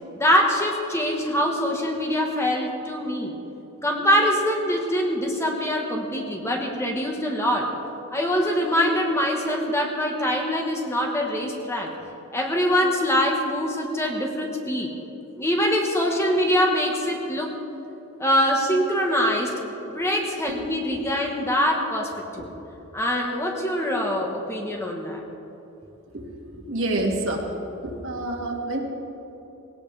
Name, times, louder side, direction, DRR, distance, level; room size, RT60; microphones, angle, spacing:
voice 1, 0.1-3.3 3.8-7.7 8.1-11.9 12.3-14.9 15.4-17.5 18.2-19.5 19.8-22.5 22.9-25.2, equal, 10° left, 0 dB, 1.4 m, -24 dB
voice 2, 26.1-27.6 27.8-28.8, right 1 dB, 65° right, 0 dB, 2.2 m, -28 dB
19.5 x 17.5 x 3.5 m, 3.0 s
head